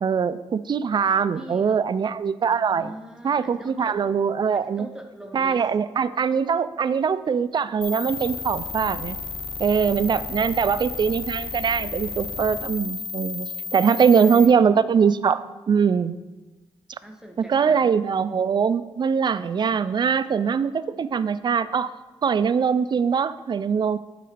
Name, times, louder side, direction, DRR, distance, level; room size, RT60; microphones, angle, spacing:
voice 1, 0.0-2.9 3.2-4.9 5.3-9.2 9.6-16.2 17.4-21.9 22.2-24.0, right 6 dB, 45° right, 14 dB, 0.4 m, -22 dB
voice 2, 1.4-1.8 2.6-4.0 4.5-5.7 13.8-14.8 17.0-17.9, right 1 dB, 5° right, 2 dB, 0.7 m, -43 dB
sound 1, 7.8-14.5, left 4 dB, 60° left, 0.8 m, -33 dB
7.8 x 4.8 x 5.0 m, 1.2 s
cardioid pair, 75°, 11 cm